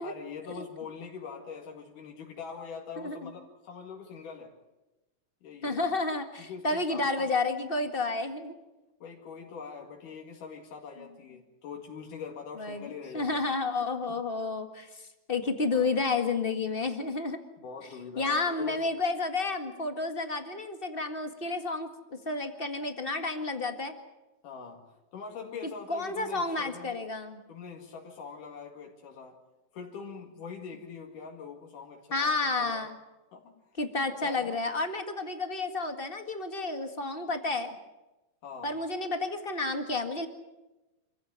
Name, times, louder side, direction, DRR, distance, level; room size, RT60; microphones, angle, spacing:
voice 1, 0.0-4.6 5.4-5.8 6.5-7.3 9.0-13.4 15.5-15.9 17.6-18.9 24.4-26.9 27.5-29.4 29.7-32.9 33.3-33.6 34.2-34.6 38.4-38.8, left 5 dB, 85° left, 1 dB, 3.6 m, -43 dB
voice 2, 3.0-3.3 5.6-8.5 11.0-11.1 12.6-17.4 18.2-23.9 25.6-27.4 32.1-32.9 33.8-37.7 38.6-40.3, left 3 dB, 25° left, 6 dB, 1.4 m, -31 dB
26.5 x 15.5 x 9.4 m, 1.0 s
omnidirectional pair, 3.6 m